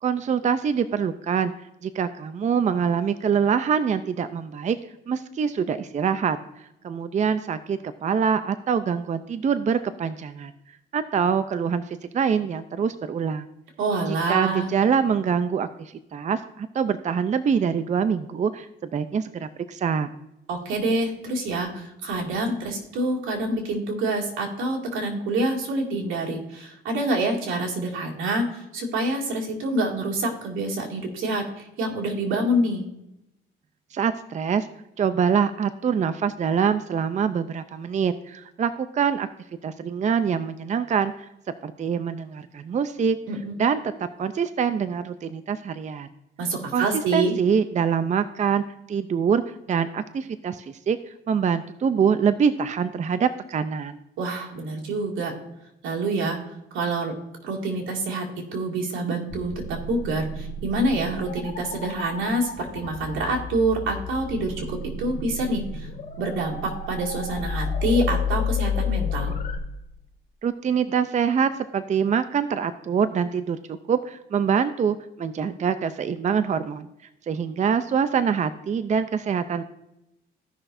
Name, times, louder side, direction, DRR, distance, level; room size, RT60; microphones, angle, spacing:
voice 1, 0.0-1.5 1.8-4.8 5.1-6.4 6.8-10.5 10.9-13.5 14.1-20.1 33.9-34.7 35.0-39.3 39.6-41.3 41.6-43.2 43.6-43.8 44.2-46.1 46.7-46.9 47.1-49.4 49.7-51.0 51.3-54.0 70.4-76.9 77.3-79.6, right 7 dB, 35° right, 11 dB, 0.5 m, -24 dB
voice 2, 13.8-14.7 20.5-32.8 43.3-43.5 46.4-47.3 54.2-55.3 55.8-56.4 56.7-57.1 57.4-65.9 66.2-69.3, right 2 dB, 90° right, -1 dB, 2.3 m, -26 dB
sound 1, 59.3-69.6, left 4 dB, 40° left, 1.2 m, -31 dB
16.0 x 5.8 x 2.6 m, 0.88 s
cardioid pair, 90°, 20 cm